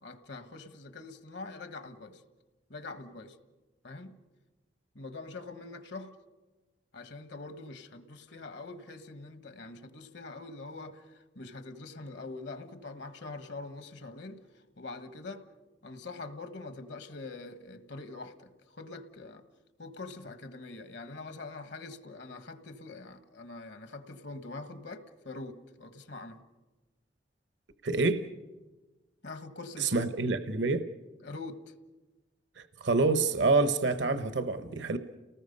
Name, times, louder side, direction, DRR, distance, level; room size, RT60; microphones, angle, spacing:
voice 1, 0.0-2.2 2.7-3.4 3.8-4.2 4.9-6.1 6.9-15.4 15.8-19.4 19.8-26.4 29.2-30.1 31.2-31.7, left 3 dB, 70° left, 1.4 m, -44 dB
voice 2, 27.8-28.2 29.8-30.9 32.6-35.0, right 3 dB, 75° right, 0.9 m, -27 dB
30.0 x 19.0 x 5.4 m
head